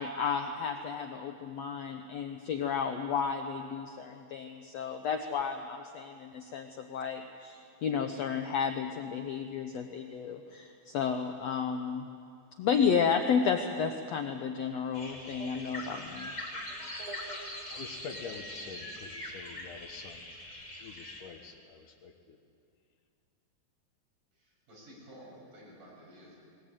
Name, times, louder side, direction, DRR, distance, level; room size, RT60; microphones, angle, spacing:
voice 1, 0.0-12.1 12.6-16.3, left 6 dB, 85° left, 6 dB, 1.4 m, -32 dB
sound 1, 14.9-21.2, left 1 dB, 15° left, 2.5 m, -42 dB
voice 2, 17.7-20.3 20.7-22.4, left 6 dB, 65° left, 5 dB, 2.6 m, -46 dB
voice 3, 24.3-26.4, equal, 65° right, -4 dB, 7.7 m, -52 dB
20.5 x 20.0 x 9.0 m, 2.3 s
omnidirectional pair, 4.2 m